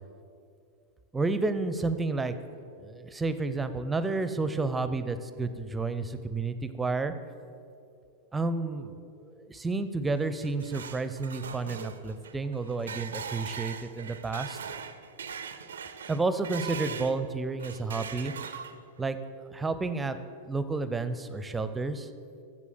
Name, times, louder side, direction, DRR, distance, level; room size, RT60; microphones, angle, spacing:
voice 1, 1.1-2.3 2.8-7.1 8.3-14.6 16.1-18.3 19.0-19.2 19.4-20.2 20.5-22.1, right 3 dB, 10° right, 11 dB, 0.6 m, -31 dB
sound 1, 10.2-17.2 17.6-19.0, right 7 dB, 65° right, 0.5 m, -40 dB
8.2 x 7.4 x 7.9 m, 2.4 s
figure-of-eight pair, 90°, 0 cm